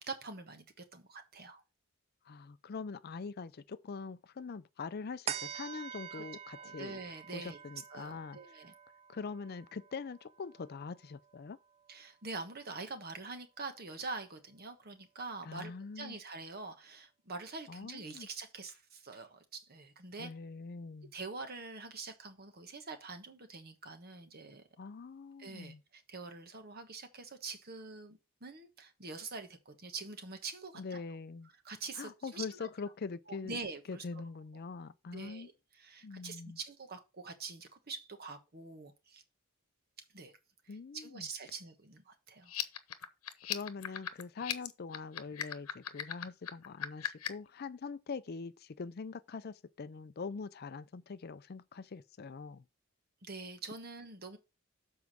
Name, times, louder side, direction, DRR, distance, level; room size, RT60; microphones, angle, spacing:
voice 1, 0.0-1.6 6.1-6.2 6.6-7.6 7.9-8.7 11.9-20.3 21.1-24.6 25.4-31.0 31.6-32.6 33.3-34.0 35.1-35.5 35.8-39.2 40.1-40.3 40.6-42.6 53.2-54.4, right 4 dB, 45° right, 1.3 m, -45 dB
voice 2, 2.2-7.0 7.3-8.4 9.1-11.6 15.4-16.2 17.7-18.3 20.2-21.1 24.8-25.8 30.7-31.5 31.9-33.6 33.9-35.5 36.0-36.6 40.7-41.3 43.4-52.6, left 4 dB, 45° left, 0.4 m, -43 dB
sound 1, 5.3-12.0 12.5-12.6, right 9 dB, 30° right, 0.4 m, -46 dB
sound 2, 42.4-47.5, left 10 dB, 80° left, 1.0 m, -38 dB
7.2 x 4.7 x 6.1 m
head